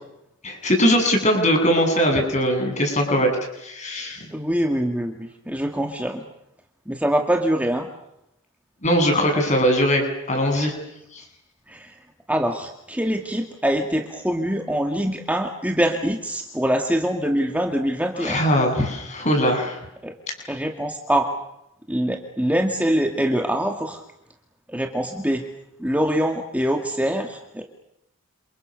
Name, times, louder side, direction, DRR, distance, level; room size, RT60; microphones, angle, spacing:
voice 1, 0.4-3.3 3.6-4.2 8.8-10.7 11.1-11.2 18.2-19.8, equal, 35° left, 4 dB, 7.9 m, -20 dB
voice 2, 4.3-6.2 6.9-7.9 10.5-10.7 11.7-11.9 12.3-18.4 20.0-20.1 20.5-21.3 21.9-24.0 24.7-25.4 25.8-27.6, equal, 5° right, 3 dB, 2.2 m, -24 dB
29.0 x 29.0 x 6.6 m, 0.82 s
head